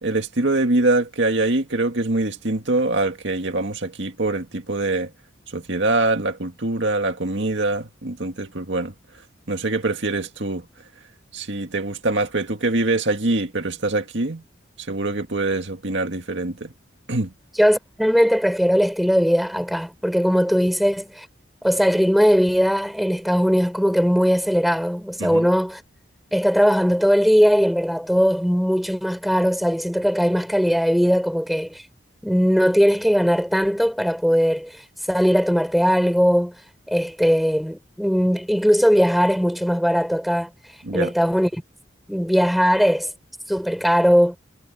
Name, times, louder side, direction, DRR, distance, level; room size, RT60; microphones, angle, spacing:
voice 1, 0.0-5.1 5.5-10.7 11.3-14.4 14.8-16.7 17.1-17.3 25.2-25.5 40.8-41.1, right 2 dB, 70° right, 2.0 m, -24 dB
voice 2, 17.6-21.3 21.6-25.8 26.3-31.8 32.2-34.7 35.1-36.6 36.9-40.5 40.9-41.6 42.1-43.1 43.5-44.4, equal, ahead, 5.9 m, -19 dB
head